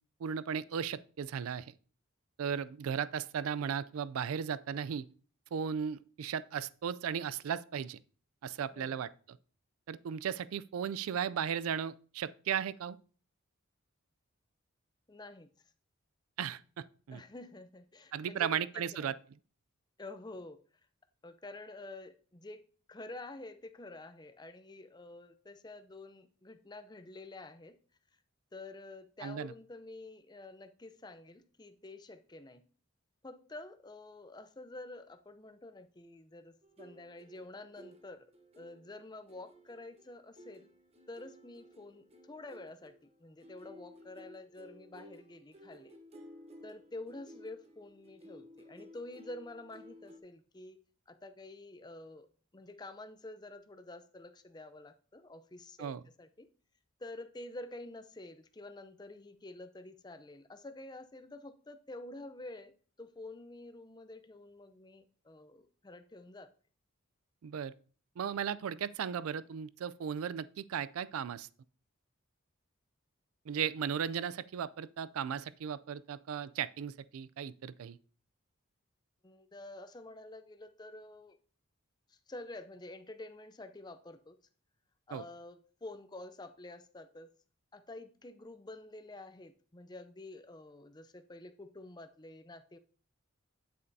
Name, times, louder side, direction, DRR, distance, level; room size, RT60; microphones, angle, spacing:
voice 1, 0.2-1.7 2.4-5.1 5.5-8.0 8.4-9.1 9.9-13.0 16.4-17.2 18.1-19.2 29.2-29.5 55.8-56.0 67.4-67.7 68.2-71.5 73.5-78.0 85.1-85.2, right 8 dB, 90° right, 0.4 m, -36 dB
voice 2, 15.1-15.5 17.1-19.1 20.0-20.6 21.2-22.6 22.9-27.8 28.5-32.6 33.2-38.3 38.6-40.7 41.1-42.9 43.2-46.0 46.6-50.8 51.1-52.3 52.5-56.5 57.0-62.7 63.0-66.5 79.2-81.4 82.1-84.4 85.1-87.3 87.7-92.8, left 2 dB, 20° left, 0.5 m, -49 dB
sound 1, 36.6-50.2, left 1 dB, 30° right, 0.9 m, -56 dB
9.3 x 8.4 x 2.7 m
head